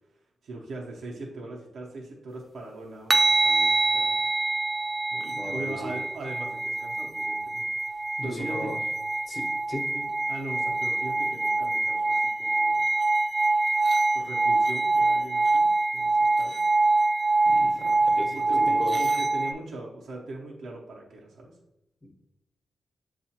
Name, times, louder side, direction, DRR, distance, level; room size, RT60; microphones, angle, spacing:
voice 1, 0.4-4.2 5.1-8.7 9.9-12.8 14.1-16.6 17.6-17.9 18.3-21.6, right 2 dB, 80° right, -2 dB, 0.7 m, -40 dB
sound 1, 3.1-19.5, right 2 dB, 35° right, 0.4 m, -25 dB
voice 2, 5.3-5.9 8.2-8.8 9.3-9.8 17.4-19.0 22.0-22.1, left 1 dB, 35° left, 1 dB, 0.8 m, -37 dB
7.1 x 2.4 x 2.8 m, 0.89 s
cardioid pair, 70°, 0 cm